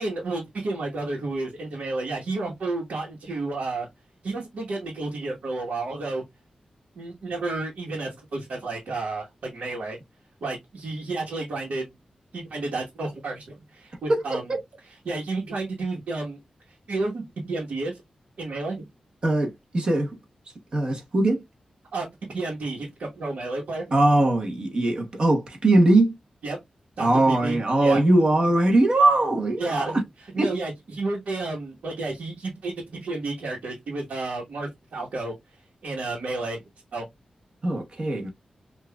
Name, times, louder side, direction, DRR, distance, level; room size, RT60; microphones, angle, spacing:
voice 1, 0.0-3.9 4.2-6.2 6.9-10.0 10.4-11.9 12.3-14.5 15.0-16.4 16.7-18.0 18.4-18.9 21.9-24.0 26.4-26.6 27.0-28.0 29.6-30.0 30.3-35.3 35.8-36.6 36.9-37.0, right 2 dB, 85° right, 1.2 m, -31 dB
voice 2, 14.1-14.6 19.2-20.2 20.7-21.4 23.9-26.1 27.0-30.0 30.4-30.5 37.6-38.3, right 2 dB, 45° right, 1.0 m, -21 dB
5.5 x 2.5 x 2.2 m
wide cardioid pair, 140°, 2 cm